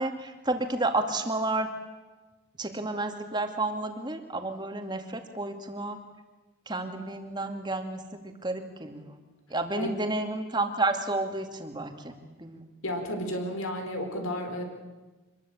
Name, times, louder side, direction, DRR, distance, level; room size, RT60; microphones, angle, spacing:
voice 1, 0.0-1.7 2.6-6.0 6.7-9.2 9.5-12.6, right 2 dB, 20° right, 6 dB, 2.4 m, -31 dB
voice 2, 12.8-14.6, left 1 dB, 90° left, 5 dB, 4.7 m, -32 dB
25.5 x 22.0 x 8.7 m, 1.2 s
head